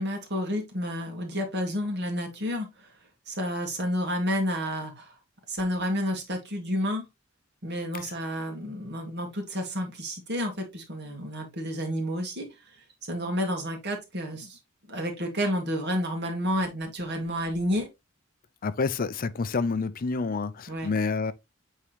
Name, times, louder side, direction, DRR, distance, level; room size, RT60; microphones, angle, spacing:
voice 1, 0.0-2.9 3.3-5.1 5.5-7.0 7.6-12.5 13.1-14.6 14.9-17.9 20.7-20.9, equal, 55° right, 2.4 m, -30 dB
voice 2, 18.6-21.3, left 4 dB, 45° left, 0.5 m, -28 dB
8.4 x 3.7 x 3.2 m
head